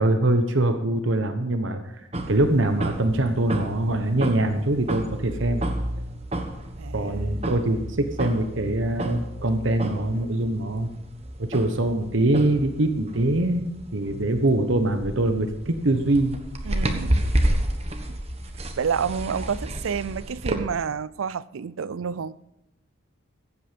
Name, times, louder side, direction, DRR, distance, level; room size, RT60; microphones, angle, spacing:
voice 1, 0.0-1.8 2.3-5.6 6.9-10.9 11.4-13.6 13.9-16.4, right 1 dB, 75° right, 1.1 m, -23 dB
sound 1, 2.1-20.5, right 1 dB, 30° right, 1.2 m, -31 dB
voice 2, 6.8-7.3 16.7-17.2 18.1-18.2 18.8-22.4, right 6 dB, 90° right, 0.4 m, -29 dB
15.5 x 8.6 x 5.2 m
head